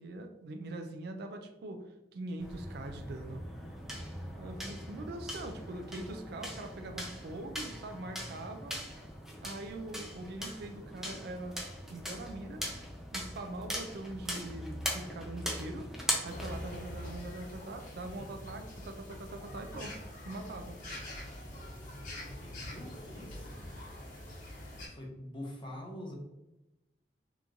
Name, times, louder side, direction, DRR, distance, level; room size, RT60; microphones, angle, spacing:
voice 1, 0.0-3.4 4.4-8.8 9.4-11.6 11.9-12.6 13.1-15.9 16.2-20.0 20.2-20.8, right 2 dB, 60° right, 6 dB, 0.4 m, -43 dB
sound 1, 2.4-17.2, equal, 5° right, 0.6 m, -40 dB
sound 2, 16.2-24.9, left 1 dB, 45° left, 1.1 m, -45 dB
voice 2, 22.2-23.5 24.8-26.1, left 1 dB, 25° left, -1 dB, 0.8 m, -45 dB
3.0 x 2.6 x 3.6 m, 0.97 s
head